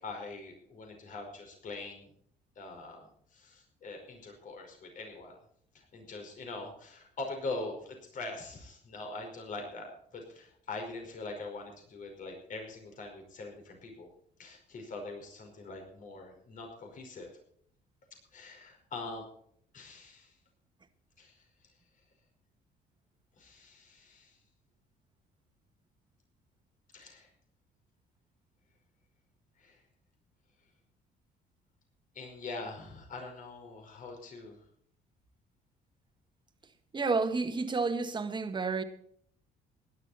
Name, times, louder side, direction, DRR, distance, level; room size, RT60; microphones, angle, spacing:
voice 1, 0.0-2.1 2.6-5.3 5.7-14.1 14.4-17.3 18.3-19.2 19.7-20.3 21.2-21.4 23.4-24.4 26.9-27.3 29.6-29.8 32.1-34.6, left 3 dB, 50° left, 5.2 m, -43 dB
voice 2, 36.9-38.8, right 4 dB, 25° right, 1.8 m, -30 dB
17.0 x 11.5 x 4.3 m
cardioid pair, 110°, 17 cm